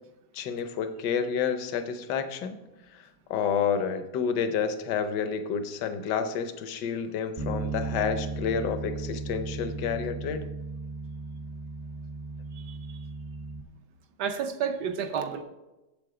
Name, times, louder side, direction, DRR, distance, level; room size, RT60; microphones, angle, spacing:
voice 1, 0.3-2.6 2.9-3.0 3.3-10.4, left 7 dB, 70° left, 1.3 m, -29 dB
Bass guitar, 7.4-13.6, right 3 dB, 55° right, 0.3 m, -36 dB
voice 2, 12.5-13.0 14.2-15.4, right 7 dB, 70° right, 1.3 m, -31 dB
7.9 x 7.4 x 4.9 m
omnidirectional pair, 2.0 m